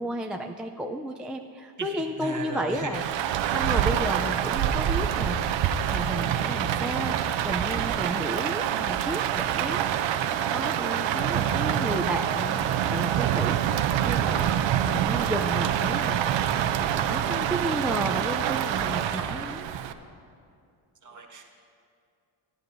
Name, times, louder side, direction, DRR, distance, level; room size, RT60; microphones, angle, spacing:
voice 1, 0.0-3.0 3.5-5.5 5.9-9.8 10.3-14.5 14.9-16.2 16.8-19.9, right 1 dB, ahead, 2 dB, 0.4 m, -33 dB
voice 2, 1.8-3.0 3.2-3.4 21.0-21.4, right 3 dB, 40° right, 1 dB, 1.6 m, -36 dB
Rain, 2.9-19.9, right 10 dB, 75° right, 0.7 m, -26 dB
18.0 x 10.0 x 2.6 m, 2.5 s
cardioid pair, 75°, 46 cm